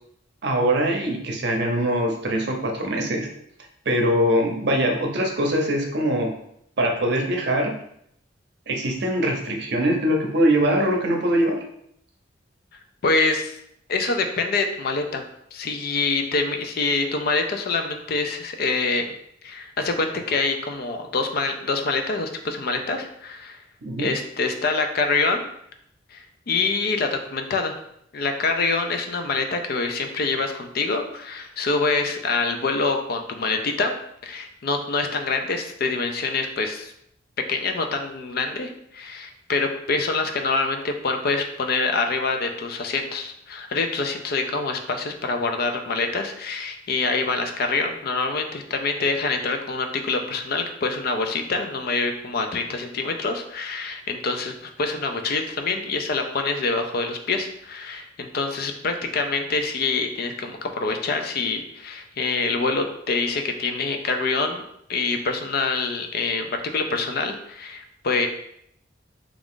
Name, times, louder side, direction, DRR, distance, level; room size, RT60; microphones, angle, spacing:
voice 1, 0.4-3.3 3.9-6.3 6.8-7.8 8.7-11.6 23.8-24.1, right 1 dB, 60° right, 2 dB, 0.7 m, -22 dB
voice 2, 13.0-13.6 13.9-15.2 15.5-19.0 19.4-23.6 24.0-25.5 26.1-27.7 28.1-33.9 34.2-36.9 37.5-64.6 64.9-66.5 66.7-68.3, left 3 dB, 55° left, 5 dB, 0.4 m, -25 dB
3.5 x 2.4 x 3.6 m, 0.71 s
head